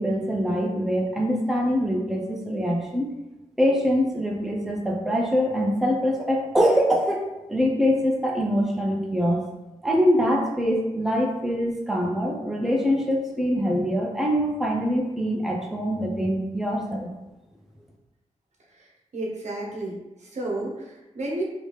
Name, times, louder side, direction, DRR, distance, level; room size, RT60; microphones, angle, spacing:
voice 1, 0.0-3.1 3.6-9.4 9.8-17.1, equal, 5° right, -1 dB, 0.5 m, -24 dB
voice 2, 19.1-21.4, right 2 dB, 70° right, -3 dB, 0.9 m, -32 dB
3.4 x 2.8 x 3.1 m, 1.0 s
wide cardioid pair, 85°, 12 cm